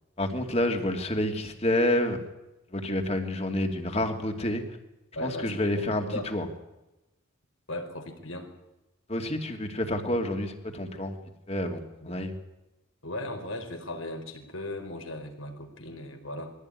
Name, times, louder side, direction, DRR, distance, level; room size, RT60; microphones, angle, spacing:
voice 1, 0.2-2.2 2.7-4.6 5.2-6.4 9.1-11.2 11.5-11.8 12.0-12.3, left 1 dB, 30° left, 5 dB, 2.6 m, -28 dB
voice 2, 5.1-6.3 7.7-8.5 12.0-12.2 13.0-16.5, left 1 dB, 75° left, 4 dB, 4.6 m, -37 dB
22.5 x 16.5 x 9.8 m, 1.0 s
head